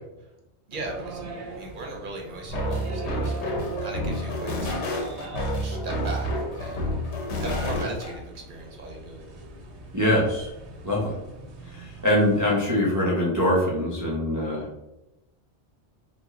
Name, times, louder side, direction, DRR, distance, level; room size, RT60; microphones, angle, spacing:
voice 1, 0.7-1.2 1.5-3.5 3.8-5.0 5.5-6.9 7.4-9.3, right 2 dB, 55° right, 0 dB, 0.7 m, -37 dB
sound 1, 0.7-12.5, right 3 dB, 85° right, 0.9 m, -41 dB
sound 2, 2.5-8.1, left 1 dB, 80° left, 1.0 m, -29 dB
voice 2, 9.9-10.5 10.8-11.1 11.6-14.7, left 1 dB, 25° right, -5 dB, 0.4 m, -23 dB
3.0 x 2.2 x 3.5 m, 0.93 s
omnidirectional pair, 1.1 m